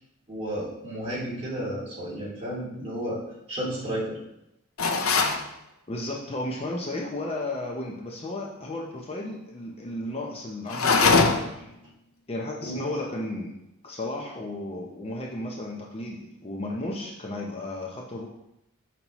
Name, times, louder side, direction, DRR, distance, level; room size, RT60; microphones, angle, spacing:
voice 1, 0.3-3.2 3.5-4.2 12.6-12.8, right 1 dB, 30° right, -8 dB, 2.3 m, -32 dB
sound 1, 4.8-5.4 10.7-11.6, left 4 dB, 75° left, 0.6 m, -21 dB
voice 2, 5.9-11.7 12.3-13.5 13.8-18.3, left 1 dB, 30° left, -1 dB, 0.6 m, -34 dB
5.9 x 5.5 x 3.0 m, 0.85 s
head